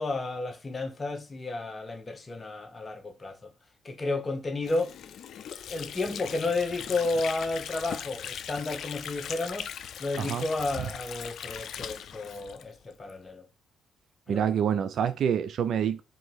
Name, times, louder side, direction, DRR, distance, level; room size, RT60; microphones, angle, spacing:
voice 1, 0.0-3.4 3.8-4.9 5.7-9.7 10.0-13.5 14.3-14.5, left 2 dB, 30° left, 1.0 m, -32 dB
Water / Sink (filling or washing), 4.6-13.2, left 9 dB, 70° left, 0.4 m, -40 dB
voice 2, 14.3-16.0, right 8 dB, 65° right, 0.5 m, -27 dB
3.9 x 2.8 x 4.7 m
cardioid pair, 90°, 0 cm